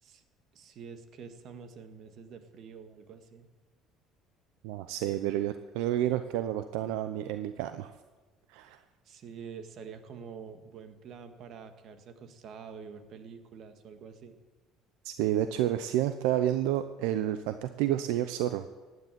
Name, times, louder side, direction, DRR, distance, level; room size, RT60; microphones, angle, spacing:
voice 1, 0.5-3.5 9.0-14.4, right 6 dB, 55° right, 8 dB, 1.8 m, -47 dB
voice 2, 4.6-7.9 8.5-8.8 15.0-18.7, right 12 dB, 85° right, 10 dB, 0.7 m, -30 dB
15.5 x 9.6 x 9.2 m, 1.3 s
cardioid pair, 105°, 0 cm